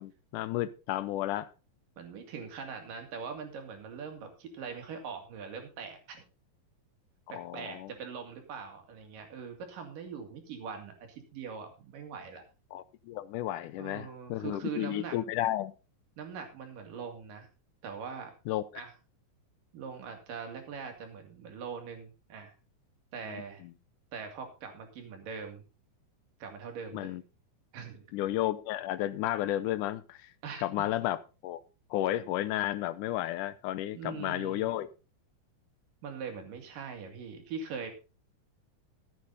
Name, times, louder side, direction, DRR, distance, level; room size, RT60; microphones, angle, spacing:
voice 1, 0.0-1.5 7.3-7.9 12.7-15.7 18.5-18.6 23.3-23.7 26.9-27.2 28.1-30.3 30.6-31.6 31.9-34.9, left 14 dB, 75° left, 2.0 m, -33 dB
voice 2, 2.0-6.2 7.3-12.4 13.8-15.2 16.2-17.5 17.8-18.3 18.8-18.9 19.7-22.5 23.1-23.6 24.1-25.6 26.4-27.2 27.7-28.1 30.4-30.9 33.9-34.7 36.0-37.9, right 6 dB, 70° right, 3.9 m, -42 dB
14.5 x 8.5 x 4.0 m
omnidirectional pair, 4.0 m